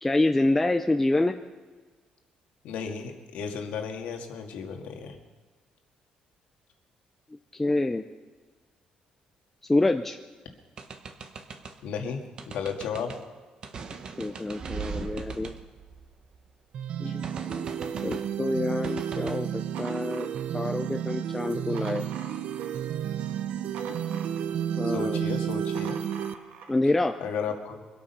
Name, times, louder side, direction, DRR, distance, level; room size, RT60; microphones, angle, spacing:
voice 1, 0.0-1.4 7.5-8.0 9.7-10.2 14.2-15.5 17.0-20.3 20.5-22.0 24.8-25.2 26.7-27.2, left 2 dB, 10° left, 6 dB, 0.5 m, -27 dB
voice 2, 2.6-5.2 11.8-12.2 12.5-13.1 17.1-17.2 18.0-18.2 24.9-26.0 27.2-27.8, left 6 dB, 80° left, 3 dB, 1.9 m, -34 dB
sound 1, 10.8-11.8 12.4-13.2 13.6-16.5 17.2-18.3 18.8-19.4, right 5 dB, 35° right, 1.0 m, -39 dB
sound 2, 16.7-26.3, right 9 dB, 60° right, 0.7 m, -31 dB
sound 3, 19.7-20.9 21.4-22.9 23.2-24.8 25.4-26.8, right 6 dB, 80° right, 1.7 m, -45 dB
24.0 x 8.6 x 5.7 m, 1.3 s
cardioid pair, 155°, 2 cm